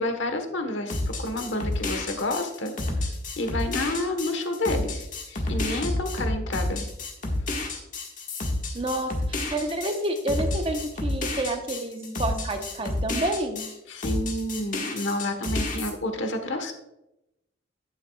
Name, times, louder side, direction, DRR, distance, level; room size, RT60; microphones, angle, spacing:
voice 1, 0.0-2.7 3.4-6.9 13.9-16.7, left 1 dB, 70° left, 6 dB, 1.2 m, -29 dB
sound 1, 0.9-13.7 14.0-15.9, left 2 dB, 40° left, 1.6 m, -30 dB
voice 2, 8.7-13.6, right 1 dB, 30° right, 5 dB, 0.9 m, -29 dB
11.5 x 9.0 x 2.3 m, 0.88 s
head